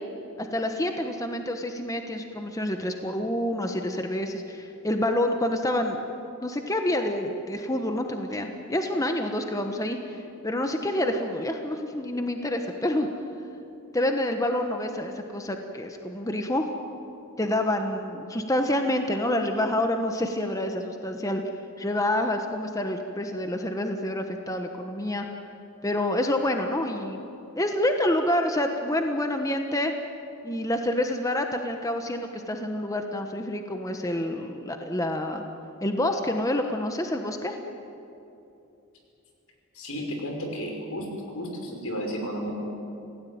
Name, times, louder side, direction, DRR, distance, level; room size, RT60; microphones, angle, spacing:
voice 1, 0.4-6.2 6.4-10.0 10.4-13.1 13.9-16.7 17.4-21.4 21.8-25.3 25.8-27.3 27.6-29.9 30.4-35.4 35.8-37.6, left 1 dB, 15° left, 4 dB, 1.2 m, -27 dB
voice 2, 39.7-41.1 41.3-42.5, equal, 80° left, 2 dB, 5.6 m, -32 dB
27.0 x 17.0 x 9.5 m, 2.8 s
head